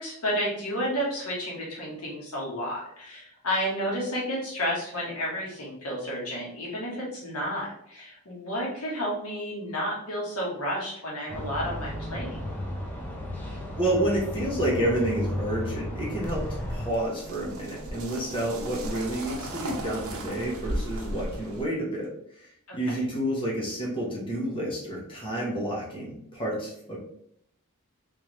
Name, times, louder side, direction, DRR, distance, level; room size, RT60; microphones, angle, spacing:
voice 1, 0.0-12.4 22.7-23.0, equal, 90° left, -3 dB, 1.4 m, -31 dB
sound 1, 11.3-16.9, left 1 dB, 10° left, 0.6 m, -34 dB
voice 2, 13.7-22.1 22.7-27.0, right 1 dB, 25° left, -5 dB, 1.1 m, -29 dB
sound 2, 16.2-21.6, right 1 dB, 75° right, 0.7 m, -36 dB
3.5 x 3.2 x 3.1 m, 0.72 s
head